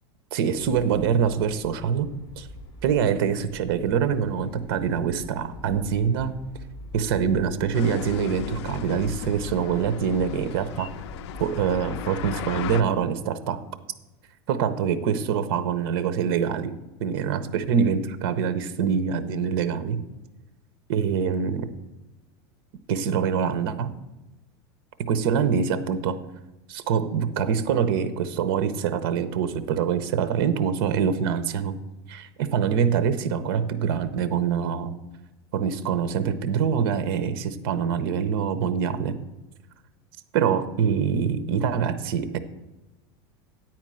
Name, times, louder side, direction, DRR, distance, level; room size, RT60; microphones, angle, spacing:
voice 1, 0.3-2.1 2.4-2.5 2.8-6.3 6.9-10.9 11.4-13.6 14.5-16.7 17.0-20.0 20.9-21.7 22.9-23.9 25.0-26.2 26.7-31.8 32.1-34.9 35.5-39.2 40.3-42.4, right 7 dB, 60° right, 13 dB, 0.7 m, -25 dB
sound 1, 0.5-12.8, left 1 dB, 30° left, 2.3 m, -44 dB
sound 2, 7.7-12.8, left 11 dB, 85° left, 0.4 m, -36 dB
9.4 x 4.4 x 7.5 m, 1.1 s
supercardioid pair, 175°, 14 cm